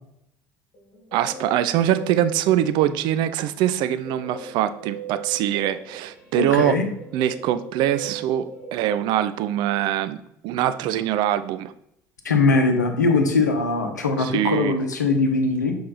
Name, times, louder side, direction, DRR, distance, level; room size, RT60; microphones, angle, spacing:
Guitar, 0.7-3.3 4.0-9.5, right 5 dB, 40° left, 2.1 m, -39 dB
voice 1, 1.1-6.8 7.1-10.2 10.4-11.7 14.2-14.8, right 11 dB, 55° right, 13 dB, 0.4 m, -23 dB
voice 2, 6.4-6.9 12.2-15.8, left 3 dB, 80° left, 5 dB, 0.8 m, -21 dB
6.4 x 4.6 x 4.0 m, 0.75 s
figure-of-eight pair, 60°, 9 cm